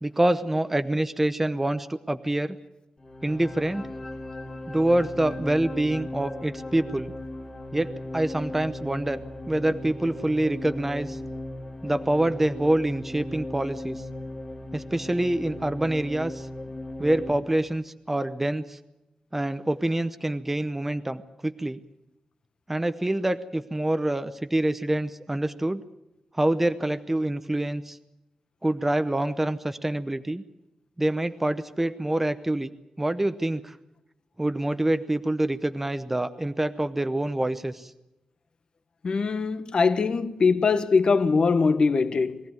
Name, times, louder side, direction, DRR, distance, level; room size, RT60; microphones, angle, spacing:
voice 1, 0.0-2.6 3.2-3.9 4.7-7.1 7.7-11.2 11.8-14.0 14.7-16.5 17.0-18.8 19.3-21.8 22.7-25.8 26.3-28.0 28.6-30.4 31.0-33.8 34.4-37.9, right 1 dB, 10° right, 0.8 m, -26 dB
sound 1, 3.0-17.3, left 1 dB, 20° left, 2.1 m, -37 dB
voice 2, 39.0-42.4, left 4 dB, 45° left, 1.2 m, -22 dB
22.0 x 16.5 x 9.4 m
wide cardioid pair, 165°, 2 cm